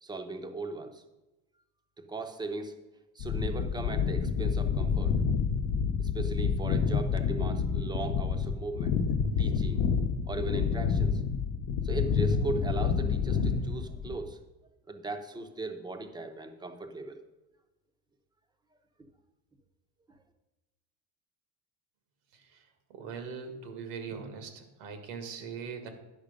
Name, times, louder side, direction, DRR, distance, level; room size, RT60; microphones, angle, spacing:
voice 1, 0.0-1.0 2.0-2.8 3.1-5.2 6.0-9.0 9.4-9.9 10.3-11.2 11.8-14.4 14.9-17.2, right 3 dB, 10° right, 6 dB, 0.7 m, -38 dB
sound 1, 3.2-14.3, left 6 dB, 55° left, 0.8 m, -28 dB
voice 2, 22.9-25.9, right 6 dB, 85° right, 7 dB, 1.9 m, -40 dB
10.5 x 6.0 x 5.1 m, 1.0 s
cardioid pair, 155°, 37 cm